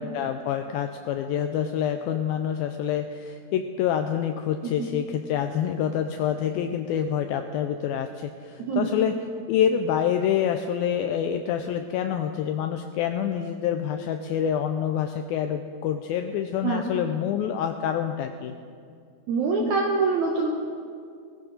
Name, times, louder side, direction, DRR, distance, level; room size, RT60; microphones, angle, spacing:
voice 1, 0.0-9.1 9.5-18.6, left 9 dB, 85° left, 6 dB, 2.1 m, -27 dB
voice 2, 8.6-9.0 16.6-16.8 19.3-20.5, right 4 dB, 75° right, -1 dB, 1.7 m, -25 dB
19.0 x 15.0 x 3.9 m, 2.3 s
omnidirectional pair, 4.7 m